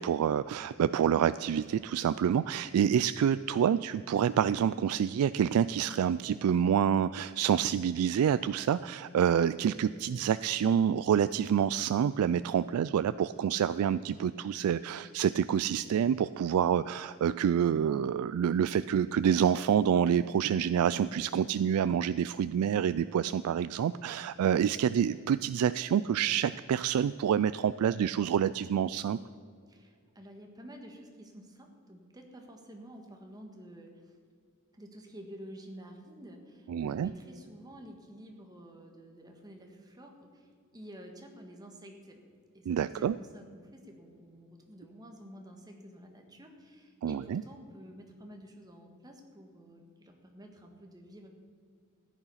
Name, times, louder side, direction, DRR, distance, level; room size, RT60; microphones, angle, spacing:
voice 1, 0.0-29.2 36.7-37.1 42.7-43.2 47.0-47.4, right 8 dB, 85° right, 14 dB, 0.3 m, -27 dB
voice 2, 29.7-34.2 34.7-42.2 42.5-51.3, equal, 20° right, 3 dB, 1.6 m, -50 dB
15.0 x 10.5 x 5.7 m, 2.2 s
head